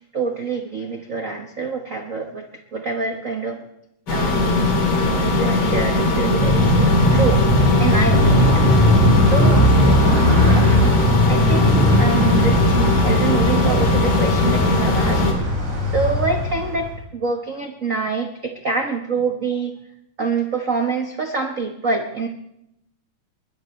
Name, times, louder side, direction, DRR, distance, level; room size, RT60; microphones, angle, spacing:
voice 1, 0.1-3.6 4.1-4.6 5.0-7.4 7.8-8.8 9.3-9.7 10.5-11.0 11.3-11.7 12.0-15.2 15.9-19.7 20.2-22.3, right 4 dB, 75° right, 4 dB, 0.7 m, -26 dB
sound 1, 4.1-15.3, left 2 dB, 40° left, 3.3 m, -19 dB
Motorcycle, 6.3-16.9, left 1 dB, 60° right, 7.2 m, -18 dB
21.5 x 20.5 x 3.2 m, 0.79 s
omnidirectional pair, 3.4 m